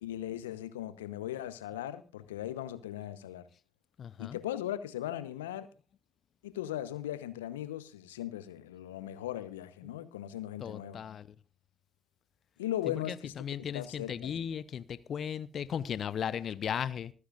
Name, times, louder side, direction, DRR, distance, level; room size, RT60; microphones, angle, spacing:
voice 1, 0.0-3.5 4.2-5.7 6.4-11.0 12.6-13.3 13.6-14.3, left 12 dB, 85° left, 0.8 m, -38 dB
voice 2, 4.0-4.4 10.6-11.3 12.9-17.1, left 8 dB, 55° left, 0.7 m, -36 dB
25.5 x 9.6 x 2.5 m
hypercardioid pair, 40°, 0 cm